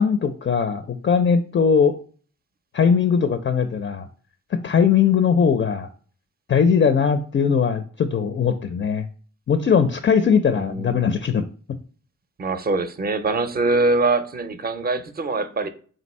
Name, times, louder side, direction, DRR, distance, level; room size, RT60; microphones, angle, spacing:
voice 1, 0.0-2.0 2.7-4.1 4.5-5.9 6.5-9.1 9.5-11.4, left 6 dB, 40° left, 0.4 m, -20 dB
voice 2, 10.5-11.0 12.4-15.7, right 3 dB, 30° right, 0.5 m, -23 dB
3.8 x 2.6 x 4.1 m
cardioid pair, 75°, 31 cm